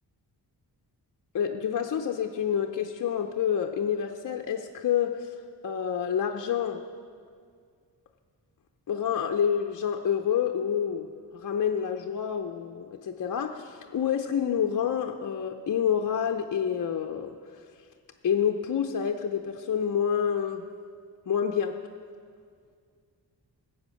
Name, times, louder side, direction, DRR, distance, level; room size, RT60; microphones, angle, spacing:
voice 1, 1.3-5.3 5.6-6.8 8.9-17.6 18.2-20.6 21.3-21.8, left 8 dB, 50° left, 4 dB, 0.6 m, -28 dB
15.0 x 8.6 x 6.3 m, 2.1 s
wide cardioid pair, 110°, 42 cm